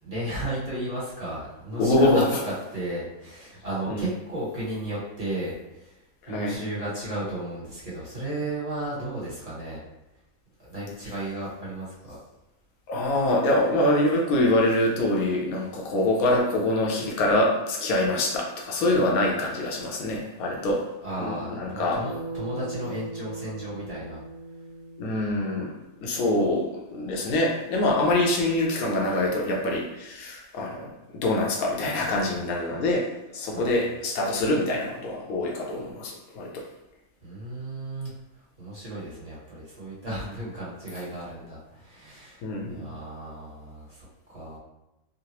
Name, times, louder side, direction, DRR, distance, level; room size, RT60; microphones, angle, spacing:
voice 1, 0.0-6.0 6.2-9.8 10.6-12.2 21.0-24.2 33.5-33.8 37.2-38.1 38.6-42.4 42.7-44.6, right 1 dB, 25° right, -8 dB, 1.1 m, -34 dB
voice 2, 1.8-2.2 3.9-4.1 6.2-6.6 12.9-20.8 21.2-22.0 25.0-25.7 26.0-30.9 31.2-36.6 42.4-42.8, left 1 dB, 75° left, -1 dB, 1.1 m, -25 dB
Bass guitar, 22.0-26.4, right 3 dB, 35° left, 0.5 m, -39 dB
3.8 x 2.0 x 2.8 m, 0.96 s
omnidirectional pair, 1.6 m